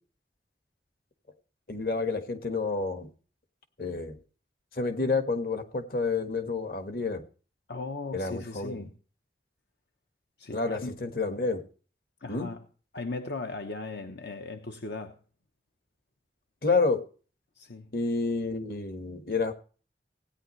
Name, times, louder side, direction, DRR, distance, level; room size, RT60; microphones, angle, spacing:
voice 1, 1.7-3.1 3.8-4.2 4.7-7.2 8.1-8.9 10.5-11.6 12.3-12.5 16.6-17.0 17.9-19.5, left 3 dB, 55° left, 7 dB, 1.6 m, -29 dB
voice 2, 7.7-8.9 10.4-11.0 12.2-12.7 12.9-15.2 17.5-17.9, left 3 dB, 75° left, 6 dB, 0.9 m, -38 dB
17.0 x 9.7 x 3.2 m, 0.38 s
head